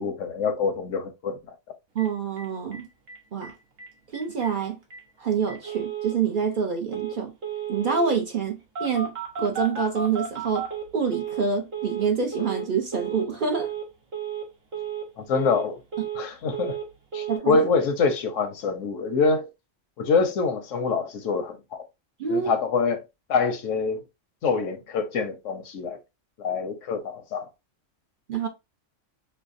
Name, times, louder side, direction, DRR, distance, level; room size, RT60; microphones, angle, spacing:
voice 1, 0.0-1.4 15.2-15.8 16.1-16.8 17.1-19.5 20.0-21.8 22.3-23.0 23.3-24.0 24.4-26.0 26.4-27.5, left 4 dB, 80° left, 1.1 m, -25 dB
voice 2, 1.9-2.9 3.3-3.5 4.1-4.8 5.2-7.3 7.7-10.7 10.9-13.7 17.3-17.6 22.2-22.5 28.3-28.5, right 6 dB, 50° right, 0.7 m, -26 dB
Telephone, 2.0-2.1 2.4-2.5 2.7-2.8 3.1-3.5 3.8-3.9 4.1-4.5 4.9-5.0 5.5-6.2 6.9-7.2 7.4-8.2 8.8-11.5 11.7-12.1 12.3-12.7 12.9-13.3 13.5-13.9 14.1-14.5 14.7-15.1 15.3-16.3 16.5-16.9 17.1-17.4, right 7 dB, 85° right, 1.5 m, -33 dB
5.5 x 2.1 x 2.5 m
omnidirectional pair, 1.3 m